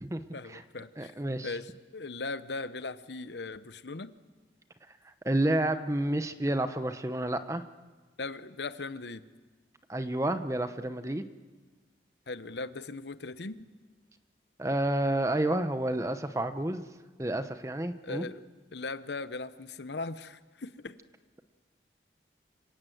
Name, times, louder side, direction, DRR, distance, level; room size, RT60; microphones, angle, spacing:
voice 1, 0.3-1.1 1.4-4.1 8.2-9.3 12.3-13.7 18.0-18.4 18.7-21.0, left 3 dB, 80° left, 13 dB, 0.9 m, -39 dB
voice 2, 1.0-1.5 5.0-7.6 9.9-11.2 14.6-16.8 17.2-18.2, right 1 dB, 15° right, 10 dB, 0.9 m, -30 dB
26.5 x 17.0 x 7.9 m, 1.3 s
head